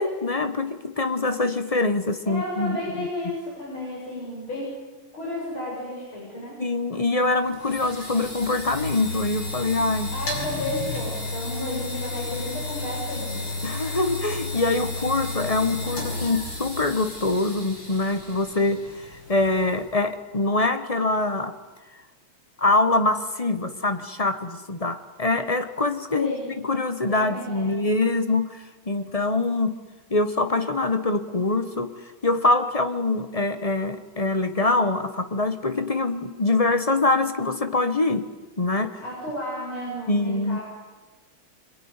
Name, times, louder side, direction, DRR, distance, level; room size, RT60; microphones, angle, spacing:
voice 1, 0.0-3.1 6.6-10.1 13.6-21.5 22.6-29.8 30.1-38.3 38.6-39.0 40.1-40.6, left 2 dB, 25° left, 9 dB, 0.9 m, -24 dB
voice 2, 2.3-4.8 5.1-6.6 10.1-13.5 26.1-26.5 27.1-27.7 39.0-40.6, left 1 dB, 70° left, -4 dB, 7.6 m, -32 dB
sound 1, 7.2-20.0, left 2 dB, 85° left, 7.6 m, -33 dB
25.5 x 23.0 x 9.7 m, 1.2 s
omnidirectional pair, 2.4 m